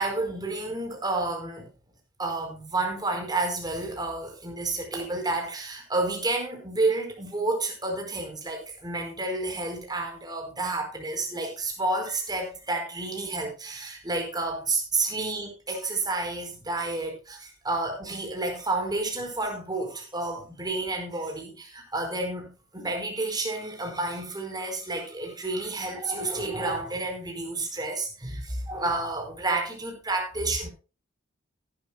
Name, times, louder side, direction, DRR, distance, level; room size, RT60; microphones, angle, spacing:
voice 1, 0.0-1.7 2.2-30.7, right 2 dB, 20° right, 3 dB, 4.5 m, -30 dB
18.0 x 11.5 x 2.2 m, 0.32 s
head